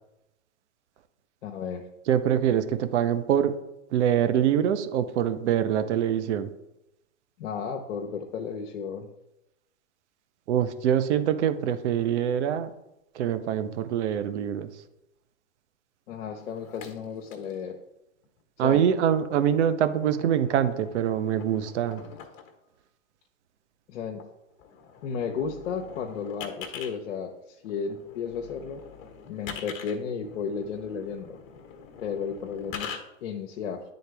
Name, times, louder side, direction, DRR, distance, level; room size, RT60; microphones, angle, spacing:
voice 1, 1.4-1.9 7.4-9.1 16.1-17.8 18.6-18.8 23.9-24.3 25.0-28.8 29.3-31.4 32.0-33.8, left 6 dB, 65° left, 2 dB, 0.9 m, -33 dB
voice 2, 2.1-3.5 3.9-6.5 10.5-12.7 13.1-14.7 18.6-22.0, right 9 dB, 60° right, 11 dB, 0.8 m, -24 dB
sound 1, 16.4-17.6 18.2-18.4 19.4-22.5 24.2-24.3 24.6-26.9 27.6-33.0, left 6 dB, 40° left, 1.2 m, -44 dB
10.0 x 3.9 x 3.4 m, 0.89 s
hypercardioid pair, 120°, 39 cm